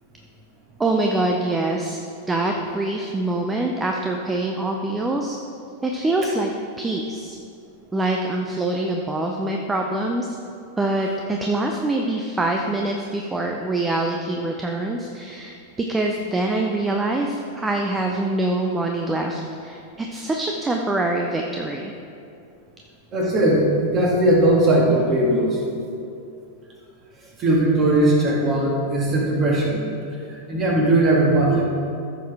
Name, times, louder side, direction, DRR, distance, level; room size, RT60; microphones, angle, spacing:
voice 1, 0.8-2.0 2.3-5.4 5.8-6.5 6.8-7.4 7.9-10.4 10.8-21.9, right 2 dB, 10° right, 2 dB, 0.6 m, -24 dB
voice 2, 23.1-25.6 27.4-29.8 30.3-31.6, right 1 dB, 30° right, -2 dB, 2.1 m, -19 dB
14.5 x 6.3 x 3.6 m, 2.6 s
figure-of-eight pair, 90°, 0 cm